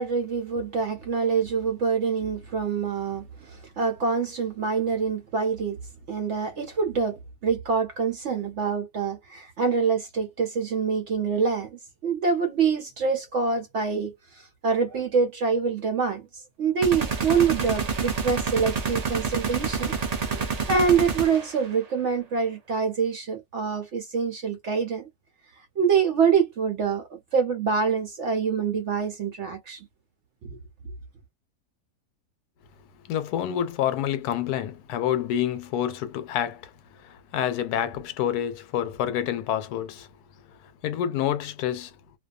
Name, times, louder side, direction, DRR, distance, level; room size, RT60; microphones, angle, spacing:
voice 1, 0.0-5.8 6.1-19.9 20.3-25.1 25.6-29.9, right 5 dB, 65° right, 0.7 m, -26 dB
sound 1, 16.8-21.7, right 5 dB, 90° right, 0.3 m, -28 dB
voice 2, 33.0-40.1 40.4-41.9, left 10 dB, 80° left, 1.1 m, -28 dB
2.5 x 2.3 x 2.3 m
omnidirectional pair, 1.7 m